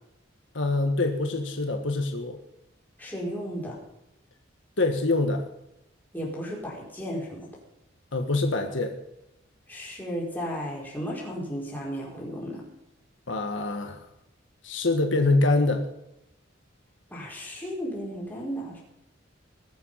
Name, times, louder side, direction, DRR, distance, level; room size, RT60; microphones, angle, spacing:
voice 1, 0.5-2.4 4.8-5.5 8.1-8.9 13.3-14.0 14.6-15.9, left 2 dB, 75° left, 5 dB, 1.5 m, -25 dB
voice 2, 3.0-3.8 6.1-7.5 9.7-12.6 17.1-18.8, equal, 10° left, -4 dB, 4.8 m, -34 dB
21.0 x 7.5 x 5.7 m, 0.87 s
head